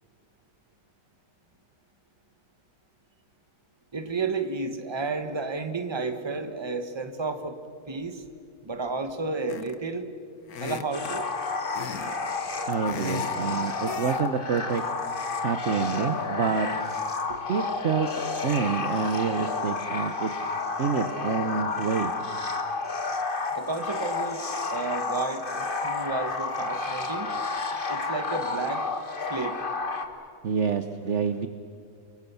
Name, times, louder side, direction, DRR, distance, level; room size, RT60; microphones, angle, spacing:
voice 1, 3.9-7.6 7.9-8.2 8.6-10.1 10.6-11.2 17.3-17.4 23.5-24.4 24.7-27.3 27.9-28.8 29.3-29.6, right 3 dB, 15° right, 8 dB, 1.2 m, -32 dB
sound 1, 9.5-9.9 10.5-11.1 11.7-12.2 12.5-13.5 13.9-14.3 14.6-14.8, left 7 dB, 55° left, 1.5 m, -37 dB
sound 2, 10.9-30.0, left 4 dB, 30° left, 1.6 m, -31 dB
voice 2, 12.7-14.8 15.4-16.7 17.5-18.1 18.4-20.3 20.8-22.1 30.4-31.5, right 6 dB, 50° right, 10 dB, 1.0 m, -27 dB
29.0 x 23.0 x 7.0 m, 2.4 s
omnidirectional pair, 2.0 m